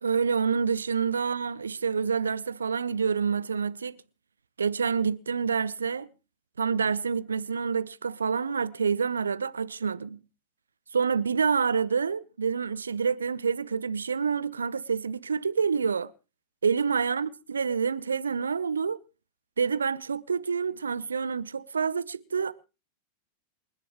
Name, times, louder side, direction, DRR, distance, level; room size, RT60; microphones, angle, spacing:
voice 1, 0.0-4.0 4.6-6.1 6.6-10.2 10.9-16.1 16.6-19.0 19.6-22.5, right 6 dB, 75° right, 0.7 m, -27 dB
28.0 x 10.5 x 3.1 m
figure-of-eight pair, 90°, 0 cm